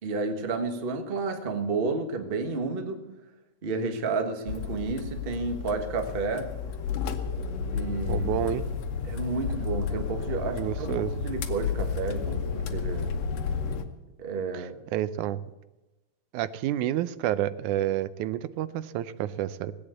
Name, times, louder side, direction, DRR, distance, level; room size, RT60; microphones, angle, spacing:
voice 1, 0.0-3.0 3.6-6.5 7.7-8.3 9.0-13.1 14.2-14.8, right 4 dB, 35° right, 5 dB, 0.8 m, -31 dB
sound 1, 4.5-13.9, left 6 dB, 65° left, 2.2 m, -31 dB
voice 2, 8.1-8.7 10.5-11.1 14.5-15.4 16.3-19.7, right 12 dB, 85° right, 15 dB, 2.1 m, -29 dB
18.5 x 8.7 x 8.1 m, 1.0 s
omnidirectional pair, 3.4 m